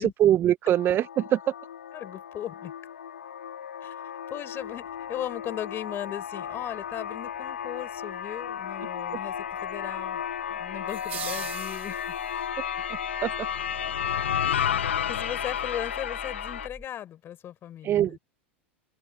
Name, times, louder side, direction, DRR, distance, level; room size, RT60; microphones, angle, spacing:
voice 1, 0.0-1.4 13.2-13.3 17.8-18.2, right 12 dB, 35° right, 0.8 m, -22 dB
sound 1, 0.7-16.7, left 8 dB, 80° left, 0.9 m, -33 dB
voice 2, 1.9-2.7 3.8-3.9 4.3-10.2 10.5-12.2 14.5-14.7 15.1-18.2, left 11 dB, 35° left, 4.8 m, -37 dB
sound 2, 4.6-16.9, left 1 dB, 5° left, 2.9 m, -50 dB
sound 3, 10.9-12.5, right 12 dB, 75° right, 0.5 m, -39 dB
open air
hypercardioid pair, 85°, 6 cm